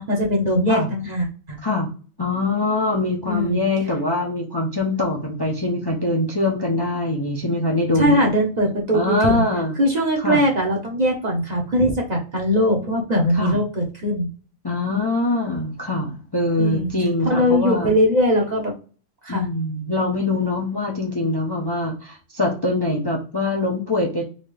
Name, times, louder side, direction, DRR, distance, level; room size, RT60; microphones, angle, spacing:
voice 1, 0.0-1.6 3.3-3.6 7.9-9.5 9.8-14.3 16.6-16.9 17.2-18.7 19.2-19.4, equal, 35° right, 0 dB, 1.1 m, -20 dB
voice 2, 2.2-8.3 8.9-9.7 10.2-10.4 13.3-13.6 14.6-17.9 19.3-24.2, left 2 dB, 25° left, -1 dB, 0.6 m, -23 dB
4.0 x 2.8 x 3.2 m, 0.37 s
omnidirectional pair, 1.3 m